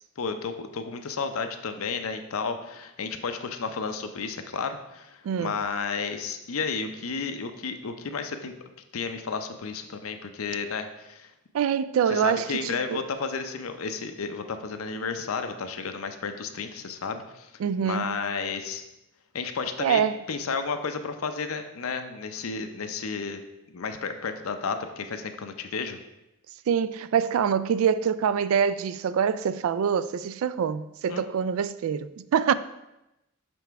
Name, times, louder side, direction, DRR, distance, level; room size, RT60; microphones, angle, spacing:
voice 1, 0.2-8.5 8.9-11.3 12.1-17.5 17.8-18.8 19.3-20.0 20.3-23.4 23.7-26.0 31.1-31.2, left 5 dB, 85° left, 0.6 m, -32 dB
voice 2, 11.5-13.0 17.6-18.2 19.8-20.2 26.7-32.5, right 7 dB, 75° right, 0.3 m, -25 dB
7.0 x 3.4 x 4.6 m
head